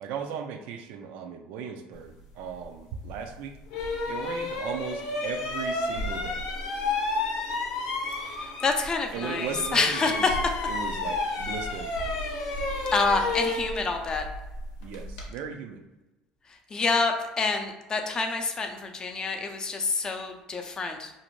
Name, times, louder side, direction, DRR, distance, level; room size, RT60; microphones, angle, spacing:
voice 1, 0.0-3.6 4.1-6.4 9.1-10.4 10.7-12.1 14.8-15.8, right 6 dB, 70° right, 6 dB, 0.3 m, -37 dB
sound 1, 3.1-3.2 3.7-8.9 9.1-15.3, left 3 dB, 85° left, 0.7 m, -31 dB
voice 2, 8.6-10.3 12.9-14.2 16.7-21.1, left 4 dB, 30° left, 4 dB, 0.4 m, -27 dB
2.6 x 2.0 x 3.0 m, 1.0 s
supercardioid pair, 105°, 3 cm